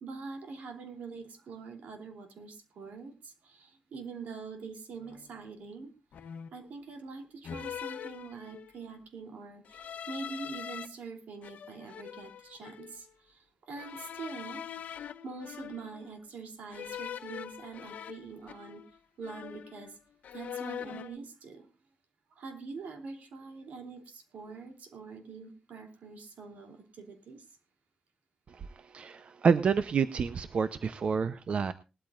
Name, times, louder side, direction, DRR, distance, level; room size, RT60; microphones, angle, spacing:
voice 1, 0.0-5.9 6.5-13.1 13.7-14.7 15.2-18.8 19.2-19.9 20.3-21.7 22.4-27.4, right 4 dB, 85° right, 5 dB, 3.0 m, -44 dB
sound 1, 5.0-5.3 6.1-6.7 7.4-8.9 9.7-10.9 11.4-13.0 13.8-16.1 16.7-19.0 19.2-20.0 20.2-21.2, left 9 dB, 80° left, 1.0 m, -43 dB
voice 2, 28.5-31.7, right 6 dB, 50° right, 12 dB, 0.7 m, -29 dB
19.5 x 13.0 x 2.5 m, 0.28 s
wide cardioid pair, 150°, 3 cm